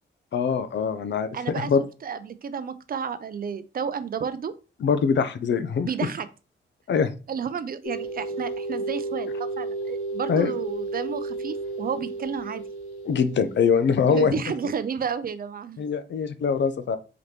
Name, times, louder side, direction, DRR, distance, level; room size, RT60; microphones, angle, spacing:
voice 1, 0.3-1.8 4.8-5.9 6.9-7.1 10.3-10.5 13.1-14.4 15.8-17.0, left 6 dB, 65° left, 11 dB, 0.5 m, -23 dB
voice 2, 1.3-1.7 2.0-4.5 5.8-6.3 7.3-12.6 14.0-15.8, right 6 dB, 45° right, 13 dB, 0.4 m, -31 dB
sound 1, 7.8-14.4, right 3 dB, 85° left, 1.7 m, -33 dB
4.0 x 2.9 x 3.3 m, 0.33 s
cardioid pair, 100°, 20 cm